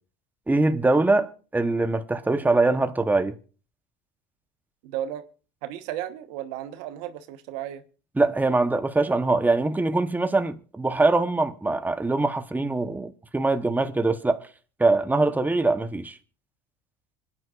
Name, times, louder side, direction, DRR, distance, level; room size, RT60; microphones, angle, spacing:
voice 1, 0.5-3.4 8.2-14.5 14.8-16.2, right 2 dB, 10° right, 0.9 m, -23 dB
voice 2, 4.8-5.2 5.6-7.8, right 12 dB, 85° right, 1.2 m, -34 dB
26.5 x 9.9 x 2.4 m
supercardioid pair, 105°, 21 cm